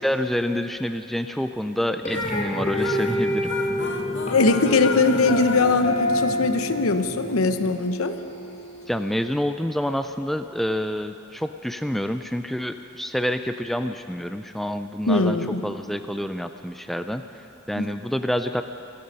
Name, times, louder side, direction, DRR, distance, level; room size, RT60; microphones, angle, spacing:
voice 1, 0.0-3.5 8.9-15.4 15.6-18.6, equal, ahead, 8 dB, 0.3 m, -27 dB
sound 1, 2.1-6.8, left 4 dB, 60° left, 1.0 m, -34 dB
sound 2, 2.1-9.1, left 1 dB, 35° left, 2.5 m, -29 dB
sound 3, 2.1-7.8, right 1 dB, 15° right, 0.7 m, -36 dB
voice 2, 4.3-8.2 15.1-15.6 17.8-17.9, left 3 dB, 90° left, 9 dB, 0.8 m, -21 dB
28.0 x 9.5 x 5.4 m, 2.8 s
head